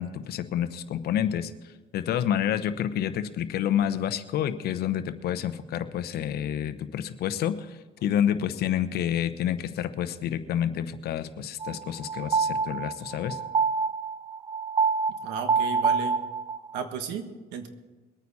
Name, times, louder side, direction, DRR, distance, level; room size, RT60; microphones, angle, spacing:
voice 1, 0.0-13.4, left 10 dB, 70° left, 11 dB, 0.9 m, -29 dB
sound 1, 11.6-16.8, right 5 dB, 25° right, 0.4 m, -27 dB
voice 2, 15.2-16.2 16.7-17.7, right 7 dB, 90° right, 7 dB, 1.5 m, -34 dB
22.0 x 9.2 x 4.2 m, 1.2 s
cardioid pair, 110°, 17 cm